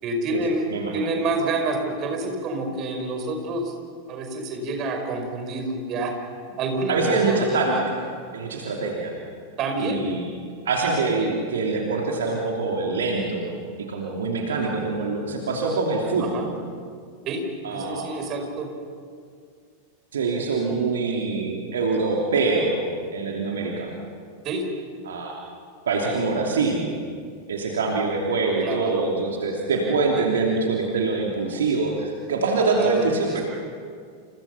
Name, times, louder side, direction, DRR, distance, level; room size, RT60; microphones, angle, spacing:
voice 1, 0.0-3.7 4.1-6.1 6.6-7.0 7.3-7.7 9.6-10.0 16.2-16.5 17.3-17.4 17.7-18.7 24.4-24.7 26.1-26.2 28.6-29.0 32.7-33.2, right 2 dB, 35° right, 4 dB, 5.2 m, -28 dB
voice 2, 0.7-1.1 6.9-8.0 8.3-9.1 9.8-10.2 10.6-13.5 13.9-16.5 17.6-18.1 20.1-22.8 23.1-23.9 25.0-25.4 25.9-26.8 27.5-33.4, right 3 dB, 65° right, -1 dB, 3.0 m, -24 dB
29.5 x 29.0 x 5.8 m, 2.2 s
figure-of-eight pair, 90°, 0 cm